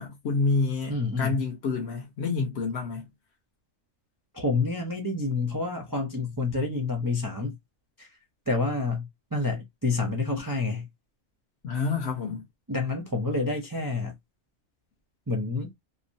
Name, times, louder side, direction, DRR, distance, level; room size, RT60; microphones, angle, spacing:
voice 1, 0.0-3.0 11.6-12.4, left 4 dB, 60° left, 0.9 m, -28 dB
voice 2, 0.9-1.4 4.3-7.5 8.0-8.1 8.5-10.9 12.7-14.1 15.3-15.7, left 3 dB, 35° right, 0.3 m, -28 dB
2.9 x 2.2 x 2.5 m
omnidirectional pair, 1.4 m